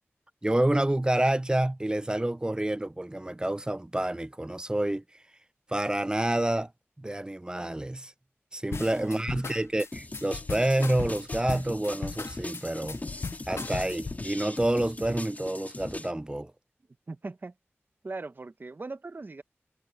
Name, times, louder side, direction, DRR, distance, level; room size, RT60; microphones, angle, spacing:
voice 1, 0.4-5.0 5.7-6.7 7.0-8.1 8.5-13.0 13.5-16.5, right 1 dB, 20° right, 0.4 m, -28 dB
sound 1, 8.7-14.2, left 4 dB, 70° left, 0.6 m, -37 dB
voice 2, 8.8-9.3 17.1-17.5 18.0-19.4, right 3 dB, 45° right, 1.0 m, -40 dB
sound 2, 9.9-16.1, left 2 dB, 35° left, 2.9 m, -40 dB
wide cardioid pair, 75°, 5 cm